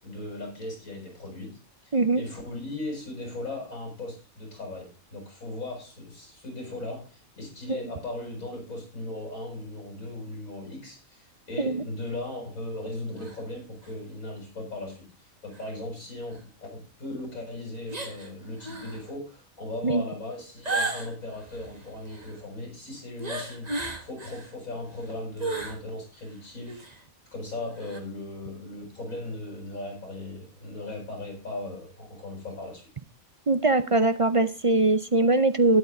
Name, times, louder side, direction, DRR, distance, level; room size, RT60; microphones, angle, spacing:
voice 1, 0.0-27.0 27.3-32.9, left 2 dB, 70° left, 1 dB, 6.9 m, -38 dB
voice 2, 1.9-2.2 7.7-7.8 11.6-11.8 19.8-20.0 33.5-35.8, right 2 dB, 50° right, 11 dB, 0.3 m, -22 dB
sound 1, 13.2-13.4 13.8-13.9 15.5-15.7 16.3-16.4 17.9-18.3 18.6-19.0 20.6-22.4 23.2-24.5 24.9-25.8 26.2-26.3 26.7-27.0 27.8-28.0, right 2 dB, 30° right, 1.8 m, -34 dB
12.5 x 10.5 x 3.9 m, 0.29 s
omnidirectional pair, 1.5 m